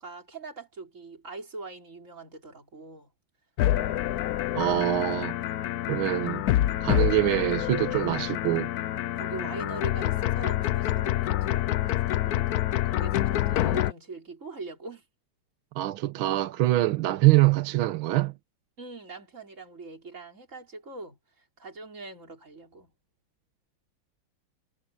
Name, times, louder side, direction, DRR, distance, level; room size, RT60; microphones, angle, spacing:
voice 1, 0.0-3.1 6.1-6.4 9.2-15.0 18.8-21.2 21.6-22.9, right 3 dB, 35° right, 4.6 m, -42 dB
sound 1, 3.6-13.9, left 13 dB, 75° left, 0.9 m, -27 dB
voice 2, 4.5-5.3 5.9-6.4 6.8-8.7 15.8-18.3, right 16 dB, 80° right, 1.6 m, -24 dB
omnidirectional pair, 2.3 m